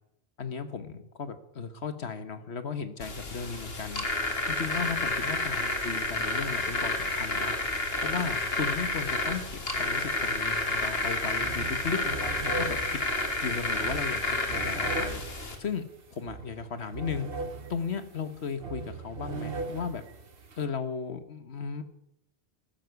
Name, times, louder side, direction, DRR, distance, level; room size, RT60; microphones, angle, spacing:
voice 1, 0.4-4.0 4.5-7.5 8.0-12.3 12.6-13.0 13.4-15.2 15.6-15.8 16.1-17.3 17.7-20.0 20.6-21.8, left 5 dB, 85° left, 10 dB, 1.6 m, -35 dB
sound 1, 3.0-15.6, left 2 dB, 65° left, 2.4 m, -30 dB
sound 2, 11.0-11.1 11.4-20.6, right 3 dB, 60° right, 1.5 m, -39 dB
14.5 x 13.5 x 5.9 m, 0.81 s
omnidirectional pair, 1.1 m